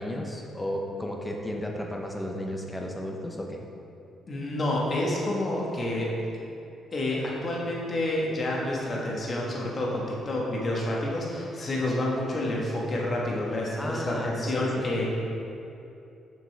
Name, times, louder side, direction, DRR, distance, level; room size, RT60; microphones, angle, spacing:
voice 1, 0.0-3.6 13.8-14.7 14.9-15.1, left 1 dB, 10° left, 1 dB, 0.9 m, -34 dB
voice 2, 4.3-6.1 6.9-15.1, left 1 dB, 40° left, -4 dB, 1.6 m, -29 dB
7.5 x 5.8 x 3.5 m, 2.7 s
cardioid pair, 90°, 0 cm